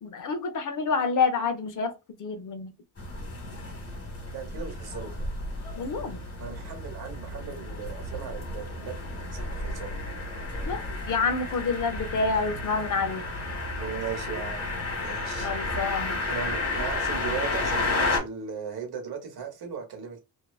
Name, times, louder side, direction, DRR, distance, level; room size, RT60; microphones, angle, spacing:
voice 1, 0.0-1.9 2.2-2.7 5.8-6.2 10.7-13.3 15.4-16.2, left 4 dB, 55° left, 0.6 m, -28 dB
sound 1, 3.0-18.2, left 2 dB, 40° left, 1.3 m, -32 dB
sound 2, 3.2-17.2, left 2 dB, 45° right, 0.9 m, -47 dB
voice 2, 4.3-5.1 6.4-9.9 13.8-14.7 15.0-15.5 16.3-20.2, right 6 dB, 85° right, 1.0 m, -37 dB
2.8 x 2.3 x 2.2 m
cardioid pair, 90°, 37 cm